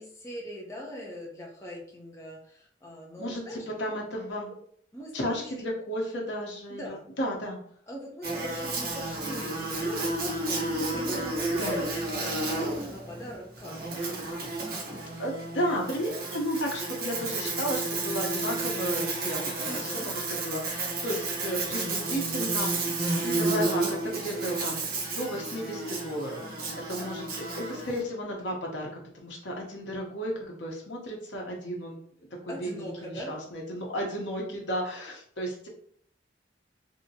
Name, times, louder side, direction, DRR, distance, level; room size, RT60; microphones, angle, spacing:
voice 1, 0.0-3.7 4.5-4.6 4.9-5.5 6.7-7.0 7.9-14.1 19.6-20.1 26.4-27.6 32.5-33.4, equal, 15° left, -3 dB, 0.6 m, -41 dB
voice 2, 3.2-4.5 5.1-7.6 11.6-11.8 15.2-22.7 23.2-24.8 25.2-26.4 26.9-27.2 27.6-28.9 29.1-32.0 32.5-35.7, equal, 80° left, 0 dB, 0.9 m, -33 dB
Buzz, 8.2-28.0, right 2 dB, 55° right, 1.0 m, -31 dB
3.6 x 2.8 x 2.8 m, 0.62 s
head